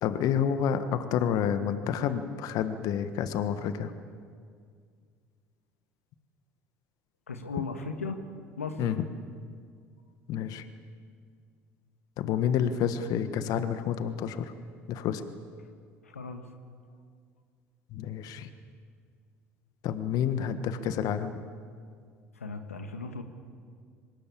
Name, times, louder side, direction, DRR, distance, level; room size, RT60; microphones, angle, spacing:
voice 1, 0.0-3.9 8.8-9.0 10.3-10.6 12.2-14.5 14.9-15.2 17.9-18.5 19.8-21.4, left 8 dB, 55° left, 10 dB, 1.4 m, -29 dB
voice 2, 7.3-8.2 8.6-8.8 16.0-16.4 22.4-23.2, left 4 dB, 90° left, 6 dB, 1.6 m, -36 dB
24.5 x 20.0 x 8.6 m, 2.1 s
hypercardioid pair, 65°, 7 cm